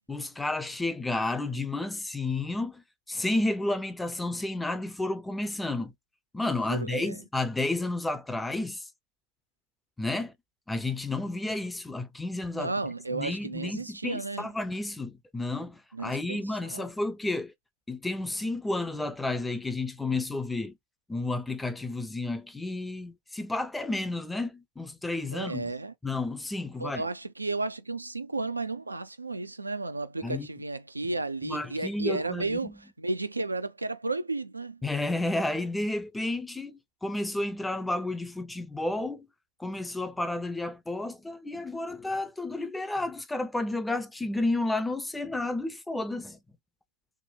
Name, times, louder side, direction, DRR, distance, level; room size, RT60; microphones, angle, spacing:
voice 1, 0.1-2.8 3.1-5.9 6.3-8.9 10.0-10.3 10.7-12.7 13.1-17.5 17.9-20.7 21.1-25.7 26.0-27.0 30.2-30.5 31.4-32.7 34.8-39.3 39.6-46.4, left 2 dB, 5° left, 0.5 m, -31 dB
voice 2, 6.7-7.2 12.5-14.5 15.9-16.9 25.3-25.9 26.8-34.8, right 3 dB, 80° right, 0.4 m, -33 dB
3.5 x 2.1 x 3.9 m
figure-of-eight pair, 90°, 0 cm